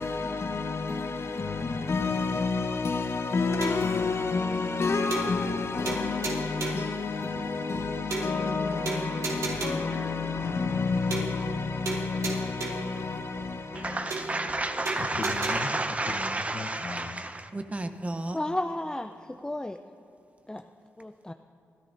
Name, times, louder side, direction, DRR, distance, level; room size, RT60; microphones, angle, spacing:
voice 1, 0.0-17.2, left 4 dB, 55° left, 1.0 m, -30 dB
sound 1, 3.6-3.9 4.4-4.5 4.7-4.8 5.1-5.6 5.9-6.9 7.4-7.5 7.7-7.8 8.1-8.6 8.9-9.9 10.4-10.5 10.7-10.8 11.1-11.6 11.9-12.9 13.4-13.5 13.7-13.8 14.1-14.6 14.9-15.5, right 3 dB, 75° right, 3.4 m, -34 dB
voice 2, 13.7-18.4, right 2 dB, 25° right, 0.8 m, -31 dB
voice 3, 18.3-19.8 20.5-20.6 21.0-21.3, left 1 dB, 15° left, 0.5 m, -33 dB
26.0 x 13.5 x 2.6 m
cardioid pair, 65°, 5 cm